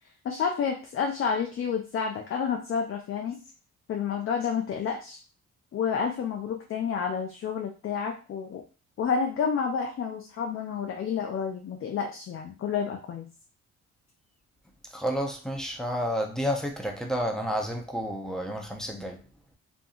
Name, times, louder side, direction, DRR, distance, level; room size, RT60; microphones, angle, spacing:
voice 1, 0.2-3.4 3.9-5.2 5.7-8.6 9.0-13.3, left 6 dB, 45° left, 1 dB, 0.5 m, -30 dB
voice 2, 14.9-19.2, equal, ahead, 1 dB, 0.6 m, -30 dB
2.6 x 2.6 x 2.4 m, 0.34 s
cardioid pair, 90°, 30 cm